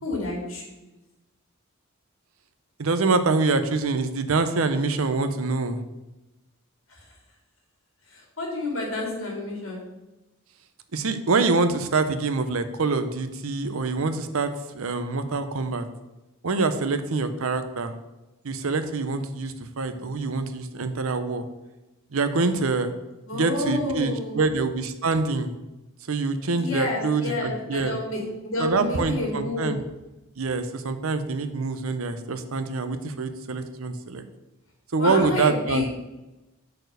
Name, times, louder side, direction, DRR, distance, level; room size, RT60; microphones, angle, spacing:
voice 1, 0.0-0.9 6.9-7.0 8.1-9.8 23.3-24.4 26.5-29.8 35.0-35.9, left 2 dB, 65° left, -1 dB, 2.5 m, -30 dB
voice 2, 2.8-5.8 10.9-15.9 16.4-17.9 18.4-21.4 22.1-22.9 23.3-25.5 26.1-28.0 28.6-29.8 30.4-34.2 34.9-35.9, right 3 dB, 75° right, 10 dB, 0.7 m, -25 dB
6.5 x 4.4 x 6.6 m, 1.0 s
head